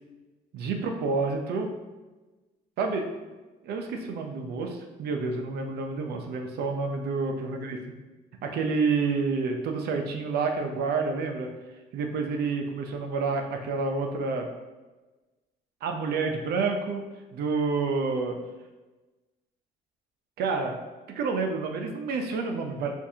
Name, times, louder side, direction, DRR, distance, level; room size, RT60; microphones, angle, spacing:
voice 1, 0.5-1.7 2.8-3.1 3.6-7.8 8.4-11.5 11.9-14.5 15.8-18.4 20.4-20.8 21.1-22.9, right 4 dB, 70° right, 4 dB, 0.7 m, -29 dB
7.0 x 2.6 x 2.8 m, 1.2 s
cardioid pair, 110°, 17 cm